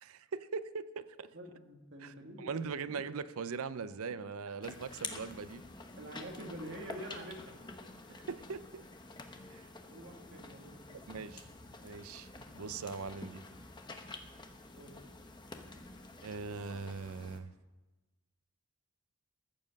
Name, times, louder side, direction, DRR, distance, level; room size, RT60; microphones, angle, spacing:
voice 1, 0.0-1.3 2.0-5.6 8.1-8.8 9.5-9.7 11.1-11.5 11.8-12.3 12.5-13.4 16.2-17.5, right 5 dB, 75° right, 14 dB, 0.5 m, -41 dB
voice 2, 1.3-2.5 6.0-7.6 9.9-11.0 14.8-15.0, right 1 dB, 50° right, 2 dB, 1.9 m, -47 dB
sound 1, 4.6-17.4, left 3 dB, 20° left, 0.8 m, -49 dB
14.0 x 7.3 x 6.4 m, 1.2 s
head